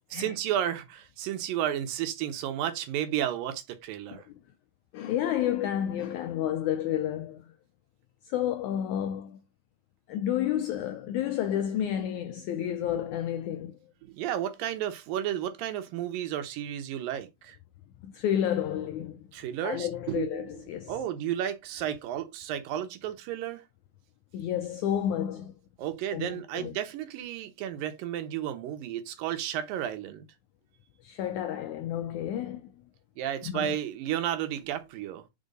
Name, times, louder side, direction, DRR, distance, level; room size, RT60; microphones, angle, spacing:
voice 1, 0.1-4.3 12.9-13.0 14.0-17.6 19.3-20.5 20.9-23.6 25.8-30.3 33.2-35.2, right 11 dB, 80° right, 2.6 m, -32 dB
voice 2, 4.9-7.5 8.2-9.4 10.1-13.8 18.0-19.3 19.6-21.0 24.3-25.5 26.1-26.7 31.0-32.8 33.4-33.8, left 10 dB, 85° left, 1.7 m, -31 dB
5.3 x 4.8 x 4.8 m
omnidirectional pair, 4.0 m